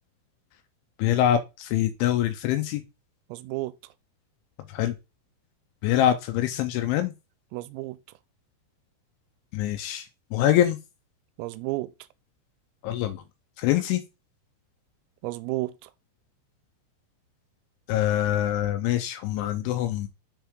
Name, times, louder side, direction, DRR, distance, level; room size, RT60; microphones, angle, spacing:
voice 1, 1.0-2.8 4.7-4.9 5.8-7.1 9.5-10.8 12.8-13.2 13.6-14.0 17.9-20.1, left 12 dB, 80° left, 2.8 m, -24 dB
voice 2, 3.3-3.7 7.5-8.0 11.4-11.9 15.2-15.9, right 19 dB, 85° right, 3.2 m, -32 dB
7.4 x 5.9 x 3.6 m
omnidirectional pair, 6.0 m